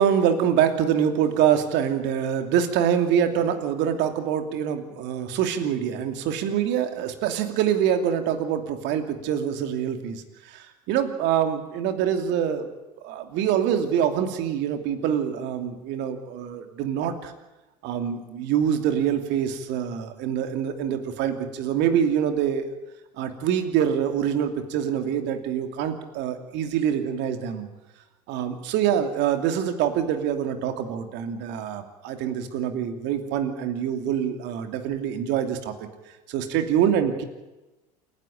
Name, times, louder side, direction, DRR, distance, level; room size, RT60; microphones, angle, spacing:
voice 1, 0.0-12.7 13.0-17.3 17.8-22.6 23.2-27.7 28.3-35.7 36.3-37.2, right 9 dB, 60° right, 7 dB, 2.8 m, -25 dB
28.5 x 11.0 x 9.3 m, 1.1 s
hypercardioid pair, 75°, 21 cm